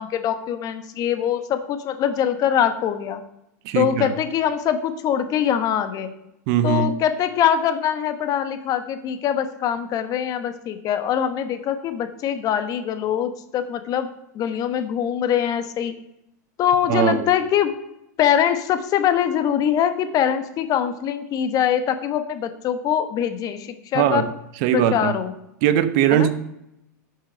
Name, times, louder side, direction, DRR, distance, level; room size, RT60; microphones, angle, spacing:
voice 1, 0.0-3.2 3.7-6.1 6.6-14.1 14.3-15.9 16.6-17.7 18.2-24.2 24.7-25.3 26.1-26.3, left 9 dB, 40° left, 10 dB, 1.2 m, -23 dB
voice 2, 3.6-4.1 6.5-6.9 16.9-17.3 23.9-24.3 24.6-25.1 25.6-26.4, right 10 dB, 55° right, 13 dB, 0.9 m, -20 dB
11.0 x 6.3 x 5.2 m, 0.83 s
hypercardioid pair, 110°, 9 cm